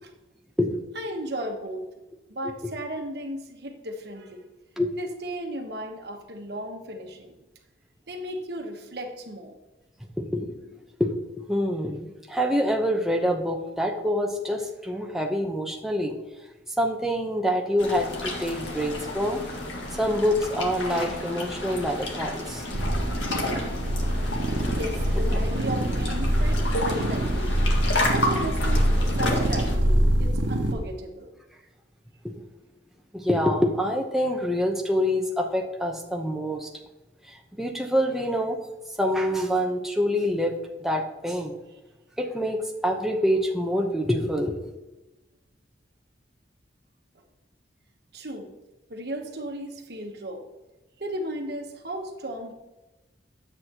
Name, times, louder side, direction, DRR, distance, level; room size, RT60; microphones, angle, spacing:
voice 1, 0.9-1.8 2.3-4.4 5.0-7.3 8.1-9.6 24.7-27.6 28.1-31.3 48.1-48.5 48.9-50.4 51.0-52.5, equal, 60° right, 3 dB, 1.1 m, -35 dB
voice 2, 10.2-10.6 11.0-16.2 16.8-19.4 20.0-22.7 23.5-23.6 25.3-25.4 32.2-32.3 33.1-36.7 37.3-38.6 39.0-40.5 40.8-41.6 42.2-44.6, equal, ahead, 1 dB, 0.8 m, -26 dB
sound 1, 17.8-29.8, left 1 dB, 75° left, 1.8 m, -31 dB
sound 2, 22.7-30.7, right 1 dB, 90° right, 1.1 m, -24 dB
10.5 x 8.0 x 3.0 m, 1.1 s
head